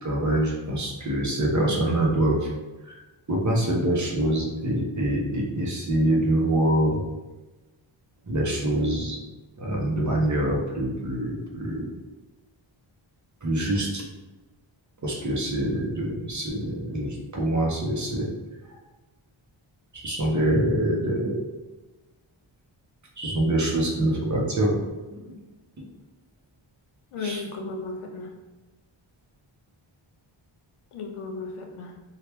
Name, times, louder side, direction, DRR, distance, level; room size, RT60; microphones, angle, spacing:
voice 1, 0.0-2.5 2.8-3.0 3.3-7.0 8.3-9.2 9.6-11.9 13.4-14.0 15.0-18.3 19.9-21.4 23.2-24.8 25.1-25.4 25.8-25.9 27.2-27.4, right 1 dB, 35° right, -1 dB, 0.9 m, -25 dB
voice 2, 27.1-28.4 30.9-32.0, left 3 dB, 85° left, 2 dB, 0.7 m, -35 dB
3.0 x 2.4 x 3.4 m, 1.2 s
wide cardioid pair, 75°, 50 cm